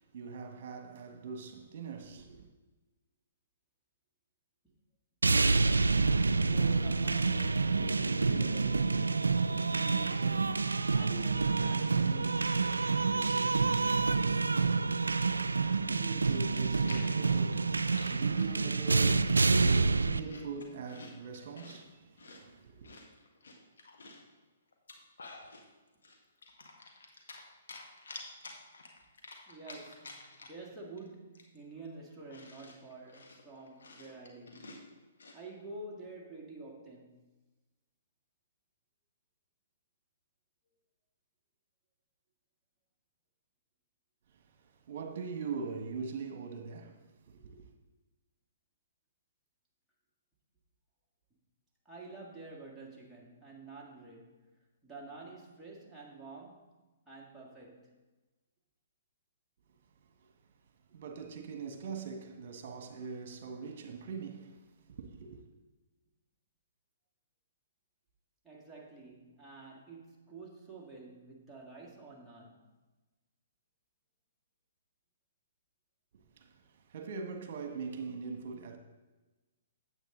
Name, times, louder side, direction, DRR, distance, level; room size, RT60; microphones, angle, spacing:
voice 1, 0.0-2.5 15.6-17.8 18.1-22.9 44.6-47.6 60.2-60.3 60.9-64.6 65.0-65.4 76.4-76.5 76.9-78.8, right 5 dB, 55° right, 1.4 m, -42 dB
sound 1, 5.2-20.2, right 4 dB, 90° right, 0.3 m, -28 dB
voice 2, 6.5-9.2 9.7-14.3 29.5-34.8 35.3-37.3 51.9-54.5 54.8-56.7 57.1-58.0 60.9-61.0 68.4-72.7, right 3 dB, 5° right, 1.9 m, -49 dB
Chewing mastication, 15.9-16.0 16.2-18.5 19.0-19.4 19.7-21.8 22.2-24.3 24.7-25.6 26.0-27.4 27.7-30.7 31.0-31.1 31.3-35.4, left 3 dB, 75° left, 1.6 m, -50 dB
9.0 x 8.0 x 3.8 m
hypercardioid pair, 130°, 0 cm